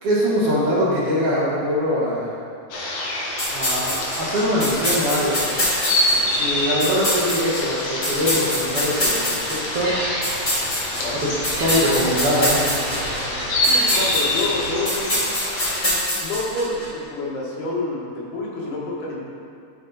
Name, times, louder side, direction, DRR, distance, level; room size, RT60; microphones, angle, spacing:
voice 1, 0.0-2.3 3.5-5.4 6.4-10.0 11.2-11.3 11.6-13.0, equal, 60° right, -7 dB, 1.9 m, -22 dB
sound 1, 2.7-15.8, left 1 dB, 60° left, 2.0 m, -26 dB
sound 2, 3.4-16.9, left 1 dB, 15° left, 1.3 m, -26 dB
Gull seagull, 9.5-14.7, right 1 dB, 30° right, 1.8 m, -32 dB
voice 2, 13.6-15.2 16.2-19.2, left 2 dB, 85° left, -4 dB, 3.0 m, -28 dB
11.5 x 4.5 x 3.9 m, 2.5 s
omnidirectional pair, 3.7 m